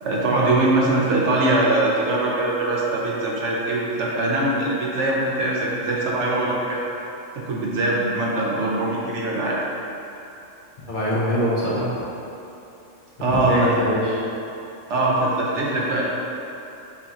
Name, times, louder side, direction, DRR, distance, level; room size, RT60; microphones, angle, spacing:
voice 1, 0.0-6.8 7.3-9.6 13.2-13.7 14.9-16.0, right 2 dB, 65° right, -4 dB, 0.9 m, -22 dB
voice 2, 10.9-12.0 13.2-14.2, equal, 45° left, -9 dB, 0.8 m, -23 dB
7.0 x 2.9 x 2.4 m, 3.0 s
omnidirectional pair, 1.4 m